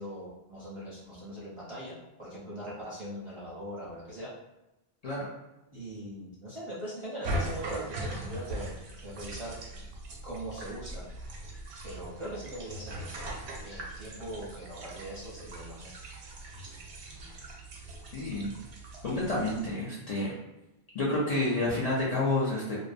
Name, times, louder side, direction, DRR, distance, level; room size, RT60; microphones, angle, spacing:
voice 1, 0.0-4.3 5.7-8.8 9.0-9.5 10.2-11.1 11.8-13.3 13.6-15.9, right 1 dB, 40° right, -7 dB, 0.5 m, -41 dB
sound 1, 7.2-19.7, right 1 dB, 85° right, 0.9 m, -40 dB
voice 2, 18.1-18.5 19.0-20.3 20.9-22.8, left 2 dB, 50° left, -7 dB, 0.5 m, -29 dB
2.5 x 2.0 x 2.5 m, 0.97 s
omnidirectional pair, 1.1 m